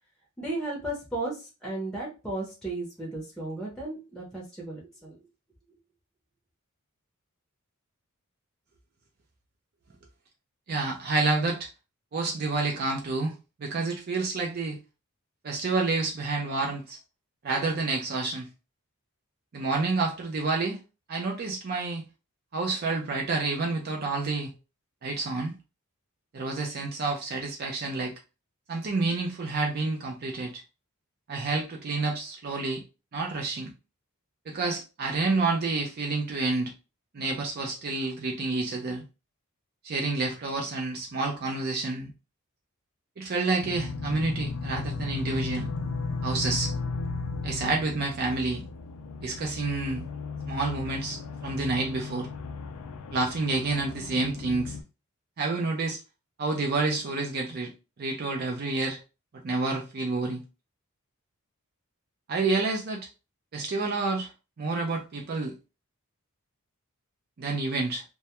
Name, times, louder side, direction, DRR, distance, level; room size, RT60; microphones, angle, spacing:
voice 1, 0.4-5.2, right 2 dB, 5° left, 0.6 m, -35 dB
voice 2, 10.7-11.7 12.1-13.3 13.6-14.8 15.4-17.0 17.4-18.5 19.5-20.8 21.1-22.0 22.5-24.5 25.0-25.5 26.3-28.1 28.7-30.6 31.3-32.8 33.1-33.7 34.5-36.7 37.1-39.0 39.8-42.1 43.2-45.7 46.2-46.7 47.4-48.6 49.2-50.0 50.5-52.3 53.1-54.8 55.4-56.0 56.4-57.7 58.0-59.0 59.4-60.4 62.3-63.1 63.5-64.3 64.6-65.5 67.4-68.0, right 3 dB, 45° right, 0.4 m, -29 dB
sound 1, 43.6-54.8, left 4 dB, 75° left, 0.4 m, -35 dB
2.2 x 2.1 x 2.8 m
head